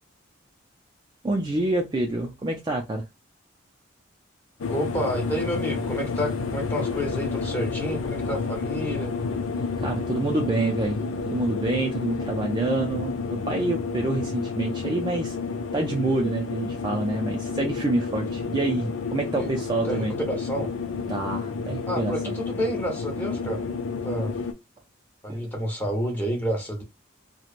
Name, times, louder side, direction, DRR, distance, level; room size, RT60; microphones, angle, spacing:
voice 1, 1.2-3.0 9.8-15.4 15.7-20.1 21.1-22.1 25.3-25.5, right 2 dB, 20° right, 0.4 m, -27 dB
sound 1, 4.6-24.5, left 4 dB, 75° left, 0.4 m, -30 dB
voice 2, 4.7-9.1 19.4-19.5 19.8-20.7 21.8-23.7 24.0-24.4 25.2-26.8, equal, 10° left, 0.9 m, -29 dB
3.0 x 2.1 x 2.4 m
head